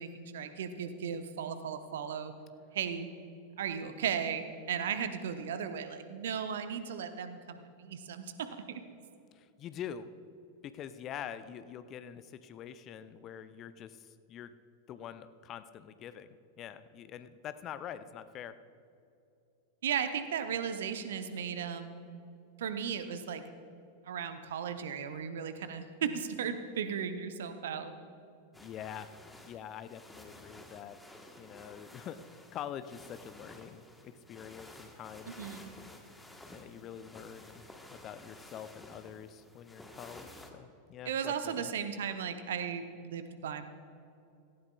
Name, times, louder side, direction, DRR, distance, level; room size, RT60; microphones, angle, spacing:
voice 1, 0.0-2.3 2.7-3.1 3.6-8.3 19.8-22.0 22.6-23.4 24.1-27.9 35.3-35.7 41.1-43.6, right 7 dB, 60° right, 9 dB, 0.8 m, -36 dB
voice 2, 9.3-10.1 10.6-14.5 14.9-16.3 16.6-18.5 28.5-29.1 29.4-31.0 31.4-35.3 36.5-37.6 37.9-41.7, left 9 dB, 30° left, 12 dB, 0.5 m, -45 dB
sound 1, 28.5-40.5, left 1 dB, 5° left, 1.2 m, -53 dB
17.5 x 15.5 x 2.3 m, 2.7 s
figure-of-eight pair, 90°, 0 cm